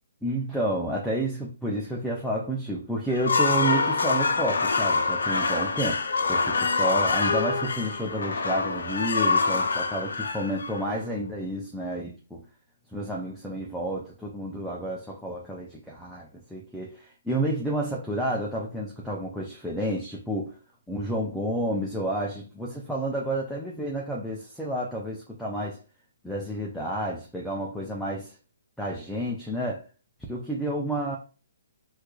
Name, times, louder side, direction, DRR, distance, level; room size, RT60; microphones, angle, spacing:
voice 1, 0.2-6.0 6.3-12.4 12.9-20.5 20.9-25.8 26.2-28.4 28.8-29.8 30.3-31.2, right 1 dB, ahead, 0.3 m, -30 dB
sound 1, 3.1-11.2, left 4 dB, 90° left, 0.6 m, -25 dB
4.4 x 2.3 x 2.3 m
hypercardioid pair, 175°, 0 cm